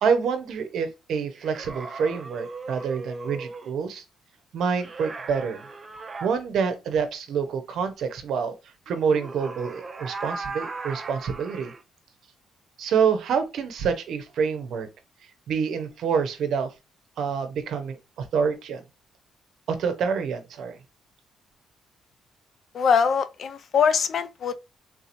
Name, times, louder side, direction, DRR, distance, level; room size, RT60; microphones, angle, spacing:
voice 1, 0.0-4.0 4.5-5.7 6.2-8.5 8.9-11.7 12.8-14.9 15.5-16.7 17.2-18.8 19.7-20.8, right 6 dB, 70° right, 0.7 m, -27 dB
sound 1, 1.3-3.8 4.8-6.3 8.9-11.8, right 3 dB, 35° right, 0.5 m, -37 dB
voice 2, 22.7-24.5, left 6 dB, 60° left, 0.4 m, -22 dB
3.7 x 2.9 x 2.5 m
cardioid pair, 90°, 0 cm